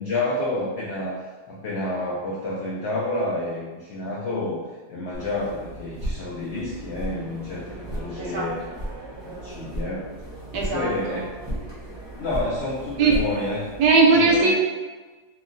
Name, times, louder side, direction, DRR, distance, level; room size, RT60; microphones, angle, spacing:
voice 1, 0.0-4.6 4.9-8.6 9.2-10.0 10.5-11.2 12.2-13.7 14.1-14.5, left 2 dB, 80° left, -5 dB, 0.6 m, -29 dB
sound 1, 5.1-13.9, right 1 dB, 25° right, 0.7 m, -35 dB
voice 2, 8.2-8.5 10.5-11.2 13.0-13.1 13.8-14.6, right 4 dB, 80° right, -1 dB, 1.1 m, -19 dB
2.9 x 2.3 x 2.5 m, 1.3 s
omnidirectional pair, 1.7 m